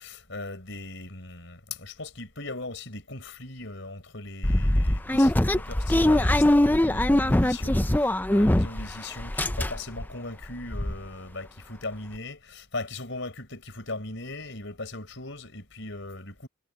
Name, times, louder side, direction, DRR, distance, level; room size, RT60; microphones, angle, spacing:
voice 1, 0.0-16.5, left 2 dB, 60° left, 5.2 m, -39 dB
Tritt gegen Mülleimer, 4.4-8.9 9.2-10.0 10.4-10.5 10.7-10.9, left 1 dB, 10° left, 0.5 m, -22 dB
head